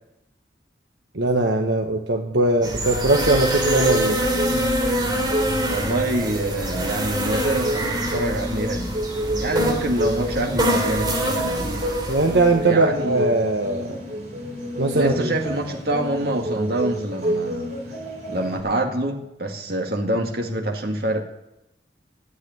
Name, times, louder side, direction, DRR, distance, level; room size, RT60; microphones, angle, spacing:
voice 1, 1.1-4.2 12.1-14.0 14.8-15.3, right 2 dB, 80° right, 2 dB, 1.2 m, -20 dB
sound 1, 2.6-12.6, right 1 dB, 25° right, 3.7 m, -25 dB
sound 2, 3.5-18.6, equal, 40° right, 6.1 m, -29 dB
voice 2, 5.7-8.9 9.4-11.9 12.6-13.3 14.9-17.7 18.3-21.2, right 1 dB, 60° right, 1 dB, 2.1 m, -26 dB
14.0 x 8.3 x 9.4 m, 0.88 s
head